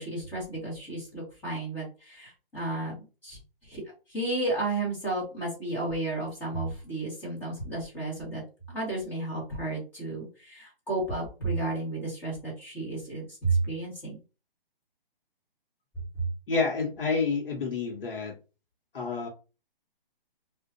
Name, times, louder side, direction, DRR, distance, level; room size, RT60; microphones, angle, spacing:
voice 1, 0.0-3.0 3.2-3.8 4.1-8.4 8.7-14.2, right 2 dB, 5° left, -7 dB, 1.3 m, -32 dB
voice 2, 16.5-18.4 18.9-19.3, left 4 dB, 70° left, -1 dB, 1.0 m, -29 dB
3.6 x 2.4 x 2.6 m, 0.33 s
hypercardioid pair, 160°, 29 cm